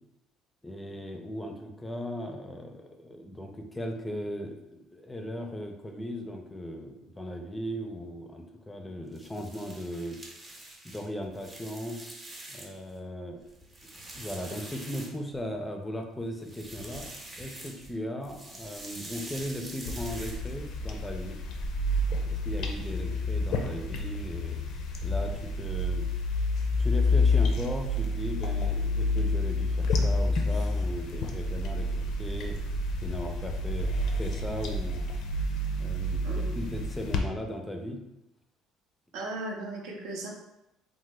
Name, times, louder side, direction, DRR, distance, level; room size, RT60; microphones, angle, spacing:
voice 1, 0.6-10.2 10.8-12.0 12.5-13.5 14.1-17.1 17.4-21.4 22.2-24.6 25.0-26.1 26.8-32.6 33.0-35.0 35.8-38.0, equal, 10° left, 3 dB, 0.4 m, -37 dB
sound 1, 9.1-12.9 13.3-15.6 16.3-18.0 18.2-20.8, right 1 dB, 20° right, 0.7 m, -45 dB
sound 2, 19.8-37.2, left 2 dB, 70° left, 0.4 m, -29 dB
voice 2, 39.1-40.3, right 2 dB, 80° right, -1 dB, 0.7 m, -36 dB
3.0 x 2.1 x 3.3 m, 0.91 s
supercardioid pair, 90°, 0 cm